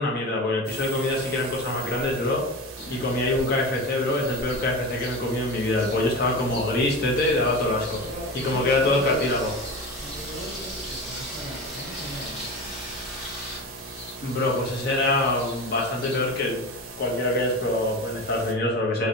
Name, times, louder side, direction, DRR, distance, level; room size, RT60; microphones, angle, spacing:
voice 1, 0.0-2.4 2.9-8.0 8.4-9.5 14.2-16.7 17.0-19.1, left 2 dB, 50° left, -2 dB, 0.7 m, -24 dB
sound 1, 0.6-18.5, right 3 dB, 75° right, 0.5 m, -39 dB
sound 2, 2.8-16.3, left 1 dB, 70° left, 1.1 m, -44 dB
Water tap faucet / Sink (filling or washing), 6.5-13.6, equal, ahead, 1.1 m, -38 dB
voice 2, 8.0-9.4 10.0-12.9, equal, 55° right, -1 dB, 0.9 m, -38 dB
3.1 x 2.8 x 2.6 m, 0.84 s
head